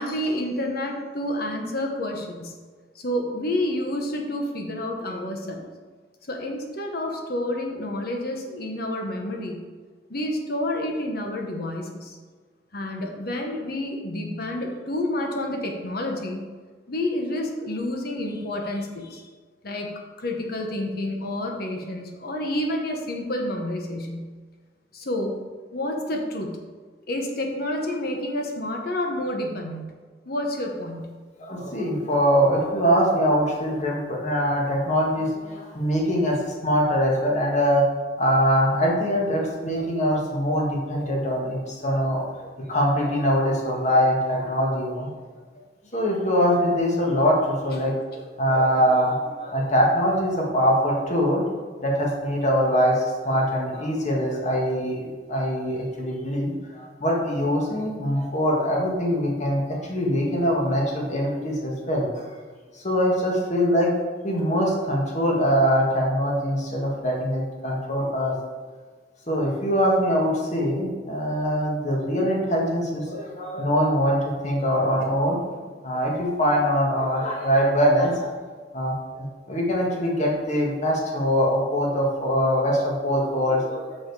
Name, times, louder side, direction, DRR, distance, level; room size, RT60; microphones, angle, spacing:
voice 1, 0.0-2.6 2.9-5.7 6.3-9.6 10.1-12.2 12.7-16.4 16.9-19.3 19.6-19.9 20.2-24.3 24.9-25.4 25.7-26.6 27.1-29.8 30.2-31.2, left 1 dB, 60° left, 2 dB, 1.1 m, -29 dB
voice 2, 31.4-36.4 36.6-37.8 38.2-45.1 45.9-51.4 51.8-62.3 62.7-63.9 64.2-68.4 69.3-75.4 75.8-78.3 78.7-84.0, equal, 45° left, -2 dB, 1.7 m, -23 dB
6.6 x 6.1 x 4.8 m, 1.4 s
head